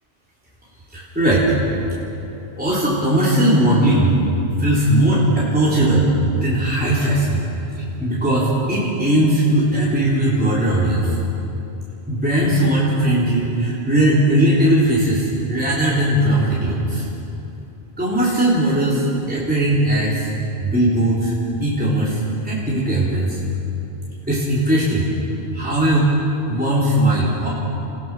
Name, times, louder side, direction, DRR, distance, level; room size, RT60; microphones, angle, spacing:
voice 1, 0.9-1.5 2.6-4.2 4.6-7.4 8.0-11.2 12.1-17.1 18.0-20.3 20.6-21.3 21.6-23.4 24.3-25.1 25.5-26.1 26.5-27.5, right 1 dB, 10° right, -8 dB, 3.7 m, -18 dB
29.5 x 17.0 x 6.2 m, 2.9 s
omnidirectional pair, 1.1 m